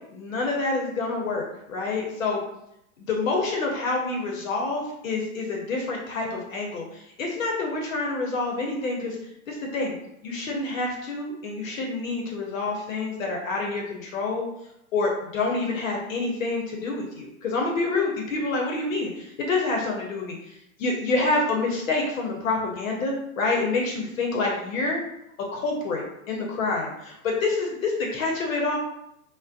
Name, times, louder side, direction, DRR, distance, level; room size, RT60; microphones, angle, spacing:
voice 1, 0.1-2.4 3.0-9.2 9.5-9.9 10.2-14.5 14.9-25.0 25.5-28.8, left 3 dB, 65° left, -1 dB, 0.6 m, -27 dB
2.5 x 2.0 x 2.3 m, 0.81 s
hypercardioid pair, 160°, 43 cm